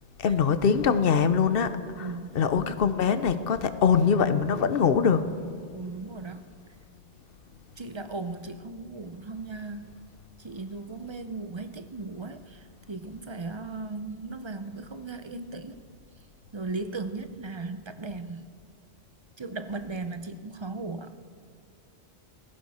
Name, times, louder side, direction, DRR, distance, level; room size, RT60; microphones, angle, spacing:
voice 1, 0.2-5.3, left 6 dB, 70° left, 12 dB, 0.9 m, -23 dB
voice 2, 2.0-2.7 5.7-6.5 7.8-9.9 10.4-15.9 16.5-18.5 19.4-21.2, right 3 dB, 35° right, 10 dB, 0.5 m, -37 dB
18.0 x 15.0 x 4.2 m, 2.1 s
omnidirectional pair, 1.0 m